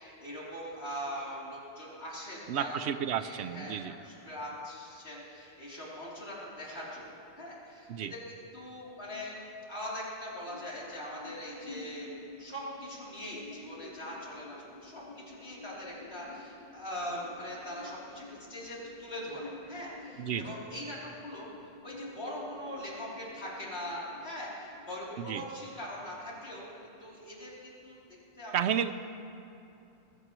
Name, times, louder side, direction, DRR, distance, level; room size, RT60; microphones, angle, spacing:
voice 1, 0.0-2.9 3.2-8.2 8.5-9.3 9.7-12.1 12.4-14.6 14.8-18.2 18.5-26.7 27.0-28.0 28.4-28.6, equal, 70° left, -6 dB, 3.6 m, -41 dB
voice 2, 2.5-4.0 7.9-8.1 20.2-20.6 25.2-25.4 28.5-28.9, right 8 dB, 80° right, 12 dB, 0.9 m, -32 dB
sound 1, 10.3-26.3, left 3 dB, 35° left, 1.4 m, -51 dB
21.5 x 15.5 x 3.1 m, 2.7 s
omnidirectional pair, 1.1 m